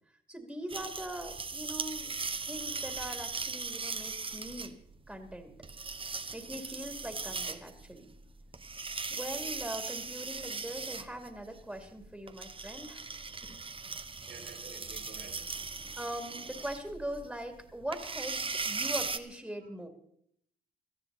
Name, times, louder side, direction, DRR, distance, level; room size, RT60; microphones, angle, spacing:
voice 1, 0.3-2.1 2.5-4.7 5.1-5.5 6.3-8.1 9.1-13.0 13.4-13.6 16.0-19.9, right 1 dB, 5° right, 4 dB, 2.6 m, -41 dB
sound 1, 0.7-19.2, right 4 dB, 30° right, 1.1 m, -39 dB
voice 2, 14.2-15.6, right 5 dB, 80° right, 3 dB, 3.6 m, -50 dB
19.0 x 13.5 x 4.1 m, 0.70 s
cardioid pair, 75°, 17 cm